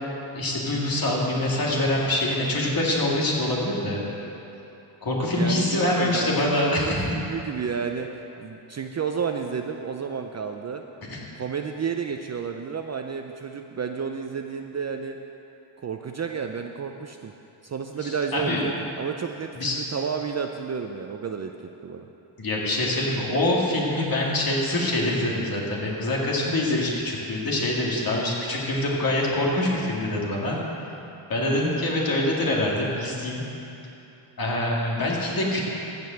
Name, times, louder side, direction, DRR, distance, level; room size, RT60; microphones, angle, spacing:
voice 1, 0.3-4.0 5.0-7.0 11.0-11.2 18.0-18.7 19.6-19.7 22.4-30.6 31.3-33.4 34.4-35.6, left 1 dB, 45° left, -3 dB, 2.5 m, -25 dB
voice 2, 5.3-8.1 8.4-10.8 11.3-15.2 15.8-17.3 17.6-21.5 21.8-22.1, right 6 dB, 35° right, 4 dB, 0.5 m, -31 dB
14.0 x 5.3 x 7.7 m, 2.9 s
cardioid pair, 110°, 50 cm